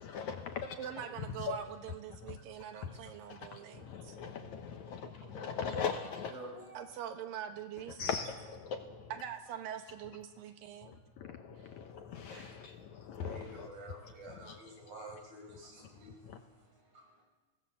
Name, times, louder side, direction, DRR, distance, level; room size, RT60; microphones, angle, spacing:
voice 1, 0.0-0.8 1.4-1.5 2.3-2.4 2.8-2.9 3.3-6.3 8.0-9.1 10.8-11.8 12.1-13.7 14.5-14.6 16.3-16.4, left 6 dB, 70° left, 6 dB, 2.0 m, -40 dB
voice 2, 0.8-4.2 5.2-5.4 6.7-8.1 9.1-11.0 12.3-12.7, right 9 dB, 80° right, 7 dB, 2.8 m, -44 dB
voice 3, 5.7-6.9 13.1-17.0, right 1 dB, 50° right, 1 dB, 5.6 m, -50 dB
23.5 x 18.5 x 7.0 m, 1.3 s
omnidirectional pair, 4.1 m